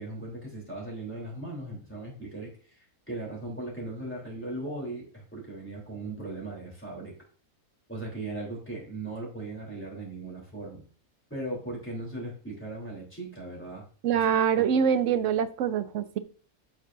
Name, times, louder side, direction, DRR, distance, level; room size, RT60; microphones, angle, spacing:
voice 1, 0.0-7.2 7.9-10.8 11.3-13.8 14.1-14.2, right 2 dB, 10° left, -4 dB, 3.6 m, -38 dB
voice 2, 14.0-16.2, right 8 dB, 65° right, 12 dB, 0.9 m, -24 dB
8.7 x 6.5 x 2.7 m, 0.41 s
omnidirectional pair, 1.5 m